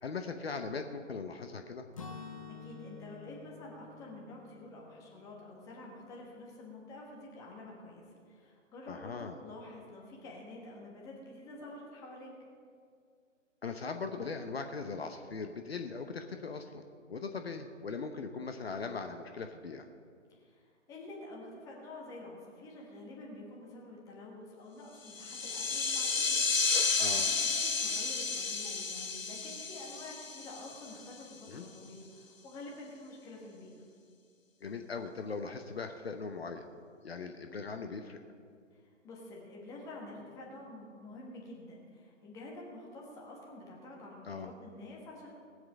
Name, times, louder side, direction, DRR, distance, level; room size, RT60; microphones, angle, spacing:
voice 1, 0.0-1.9 8.9-9.4 13.6-16.8 17.1-19.9 27.0-27.3 31.5-31.7 34.6-36.6 37.0-38.2 44.2-44.5, left 4 dB, 50° left, 6 dB, 0.9 m, -40 dB
Acoustic guitar / Strum, 2.0-5.9, left 5 dB, 25° left, 0.6 m, -49 dB
voice 2, 2.5-12.3 20.3-33.7 38.7-45.3, left 2 dB, 10° left, -2 dB, 1.3 m, -48 dB
sound 1, 25.1-31.1, left 4 dB, 85° left, 0.8 m, -32 dB
19.0 x 7.9 x 5.5 m, 2.2 s
figure-of-eight pair, 140°, 38 cm